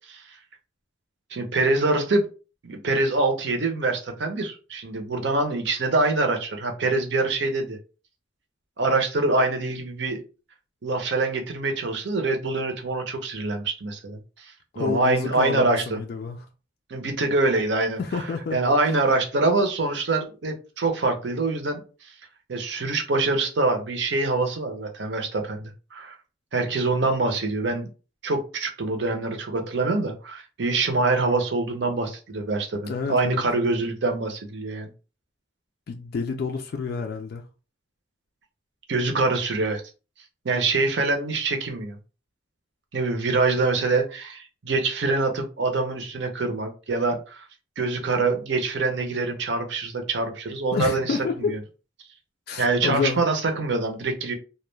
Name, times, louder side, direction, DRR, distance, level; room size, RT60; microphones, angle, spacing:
voice 1, 1.3-2.3 2.6-7.8 8.8-10.2 10.8-16.0 16.9-21.8 22.5-26.2 26.5-27.9 28.2-34.9 38.9-39.8 40.4-42.0 42.9-47.4 47.8-51.6 52.6-54.3, right 3 dB, 65° right, 0.6 m, -25 dB
voice 2, 14.7-16.5 18.0-18.6 32.9-33.4 35.9-37.4 50.7-51.5 52.5-53.2, left 4 dB, 55° left, 0.3 m, -29 dB
2.2 x 2.1 x 3.1 m
head